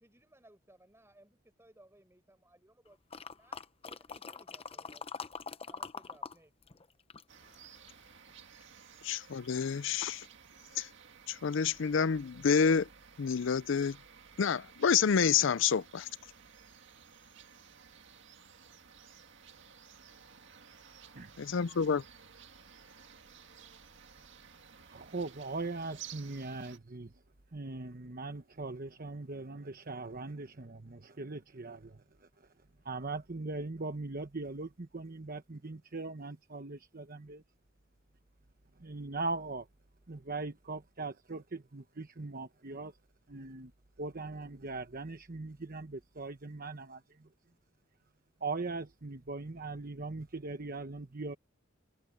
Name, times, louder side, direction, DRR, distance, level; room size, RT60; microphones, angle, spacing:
voice 1, 0.0-6.5, right 1 dB, 15° right, 5.6 m, -62 dB
sound 1, 3.1-6.4 6.6-8.1 8.6-8.7, left 5 dB, 30° left, 0.7 m, -43 dB
sound 2, 7.3-26.8, right 7 dB, 65° right, 2.0 m, -55 dB
voice 2, 9.0-10.2 10.8-10.9 11.3-12.9 13.2-14.0 14.4-16.1 21.5-22.0, left 6 dB, 65° left, 0.5 m, -28 dB
voice 3, 24.8-27.1 27.5-32.3 32.8-37.4 38.8-39.7 40.1-42.9 43.3-43.7 44.0-47.3 48.4-51.4, right 3 dB, 45° right, 1.1 m, -40 dB
head